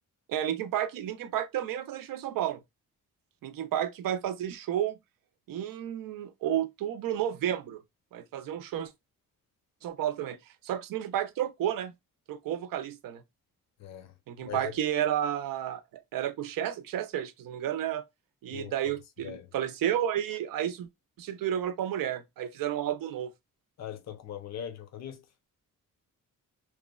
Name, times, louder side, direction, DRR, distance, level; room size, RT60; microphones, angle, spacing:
voice 1, 0.3-2.6 3.4-5.0 5.5-7.8 8.1-8.9 9.8-10.4 10.6-11.9 12.3-13.2 14.3-15.8 16.1-18.0 18.4-20.9 21.2-23.3, right 10 dB, 80° right, 0.6 m, -31 dB
voice 2, 13.8-14.7 18.5-18.7 19.2-19.5 23.8-25.2, left 9 dB, 55° left, 0.6 m, -41 dB
3.0 x 2.1 x 2.2 m
cardioid pair, 130°, 33 cm